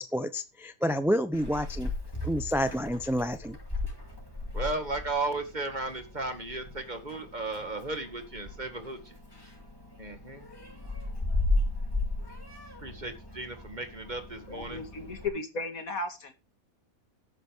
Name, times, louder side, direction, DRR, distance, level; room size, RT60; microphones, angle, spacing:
voice 1, 0.0-1.9 2.2-3.6, equal, 5° right, 0.4 m, -29 dB
Meow, 1.3-15.3, left 2 dB, 15° left, 5.7 m, -36 dB
voice 2, 4.5-9.1 10.0-10.5 12.8-14.8, right 2 dB, 30° right, 2.1 m, -35 dB
voice 3, 14.5-16.3, left 3 dB, 75° left, 2.6 m, -35 dB
14.0 x 11.0 x 3.5 m
omnidirectional pair, 1.5 m